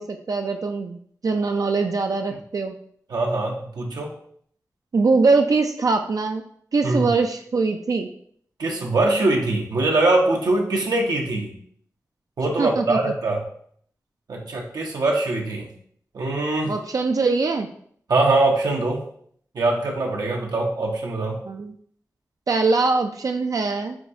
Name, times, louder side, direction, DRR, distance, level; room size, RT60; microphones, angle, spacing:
voice 1, 0.0-2.8 4.9-6.4 6.7-8.1 12.6-13.0 16.6-17.7 21.5-21.7 22.5-24.0, right 3 dB, 60° right, 4 dB, 0.4 m, -22 dB
voice 2, 3.1-4.1 6.8-7.1 8.6-11.5 12.4-13.4 14.3-15.7 16.1-16.7 18.1-19.0 19.5-21.4, right 2 dB, 80° right, 0 dB, 0.7 m, -22 dB
5.9 x 2.3 x 2.6 m, 0.62 s
cardioid pair, 40°, 7 cm